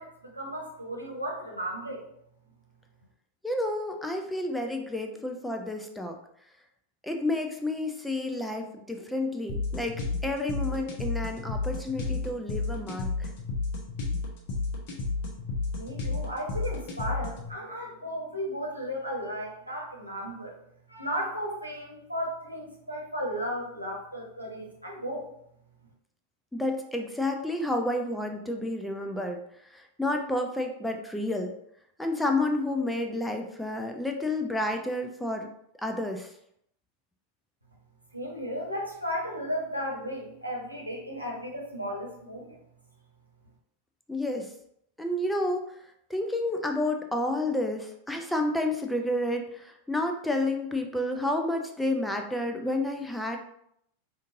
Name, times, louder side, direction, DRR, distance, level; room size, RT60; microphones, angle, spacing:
voice 1, 0.0-2.0 15.7-20.5 20.9-25.2 38.1-42.5, equal, 90° right, -3 dB, 1.0 m, -35 dB
voice 2, 3.4-6.2 7.0-13.3 26.5-31.5 32.0-35.5 35.8-36.3 44.1-44.5 45.0-45.8 46.1-53.4, left 1 dB, 5° left, 4 dB, 0.4 m, -30 dB
sound 1, 9.5-17.5, left 3 dB, 50° left, 0.9 m, -32 dB
5.0 x 2.5 x 2.6 m, 0.73 s
figure-of-eight pair, 90°, 0 cm